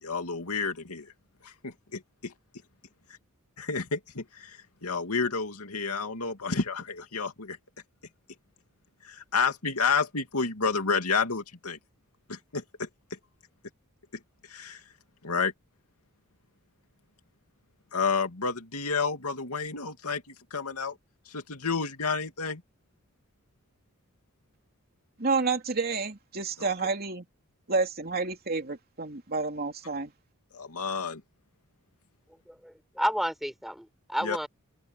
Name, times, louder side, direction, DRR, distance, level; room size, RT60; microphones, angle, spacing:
voice 1, 0.0-1.1 1.4-2.3 3.6-7.6 9.0-11.8 12.3-12.9 14.5-14.8 15.2-15.5 17.9-20.2 20.5-20.9 21.3-22.6 26.6-26.7 30.5-31.2 34.2-34.5, left 5 dB, 85° left, 2.5 m, -30 dB
voice 2, 25.2-27.2 27.7-30.1, right 4 dB, 45° right, 3.0 m, -29 dB
voice 3, 32.3-34.5, equal, ahead, 5.5 m, -31 dB
head